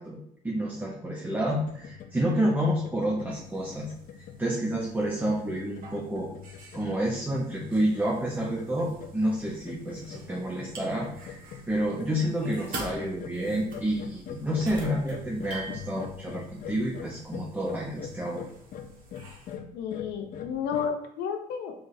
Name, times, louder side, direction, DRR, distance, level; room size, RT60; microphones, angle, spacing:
voice 1, 0.0-3.9 4.4-6.3 6.7-11.4 11.7-18.4, right 1 dB, 10° right, -4 dB, 0.8 m, -29 dB
sound 1, 1.4-20.9, left 8 dB, 55° left, 0.5 m, -44 dB
sound 2, 3.3-19.6, right 3 dB, 55° right, 1.4 m, -47 dB
voice 2, 19.7-21.7, left 7 dB, 85° left, 5 dB, 0.8 m, -32 dB
4.7 x 4.0 x 2.7 m, 0.72 s
cardioid pair, 110°, 17 cm